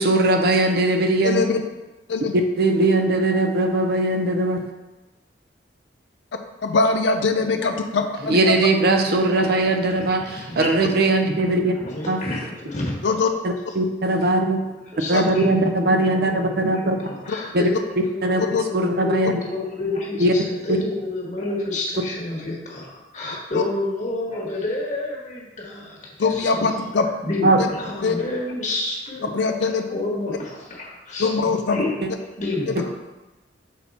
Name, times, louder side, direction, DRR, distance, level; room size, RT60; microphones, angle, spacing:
voice 1, 0.0-1.4 2.3-4.6 8.3-11.7 12.1-12.2 13.4-14.6 15.1-17.0 17.5-17.7 18.2-18.4 18.7-19.4 20.2-20.3 20.7-20.8 27.4-27.6 32.8-32.9, right 2 dB, 60° right, 4 dB, 0.6 m, -20 dB
voice 2, 1.2-1.6 2.1-2.4 6.6-8.5 13.0-13.3 15.1-15.3 17.3-17.4 18.5-18.6 19.2-19.3 23.5-23.6 26.2-27.1 27.6-27.7 28.0-28.1 29.3-29.8 31.2-31.8 32.7-32.8, left 4 dB, 75° left, 5 dB, 0.5 m, -22 dB
voice 3, 7.4-8.5 9.2-11.0 11.6-13.0 13.8-13.9 14.9-26.7 27.2-29.3 29.9-31.9 32.4-32.8, left 2 dB, 40° left, -3 dB, 1.6 m, -30 dB
6.2 x 4.2 x 4.2 m, 1.1 s
head